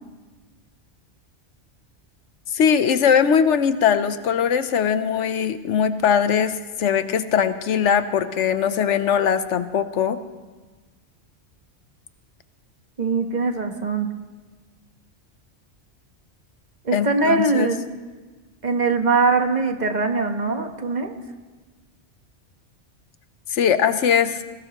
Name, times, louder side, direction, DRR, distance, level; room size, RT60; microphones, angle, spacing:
voice 1, 2.5-10.2 16.9-17.7 23.5-24.4, left 7 dB, 85° left, 11 dB, 1.1 m, -20 dB
voice 2, 13.0-14.1 16.8-17.8 18.6-21.1, right 3 dB, 40° right, 5 dB, 1.2 m, -21 dB
21.0 x 17.5 x 3.0 m, 1.3 s
omnidirectional pair, 1.2 m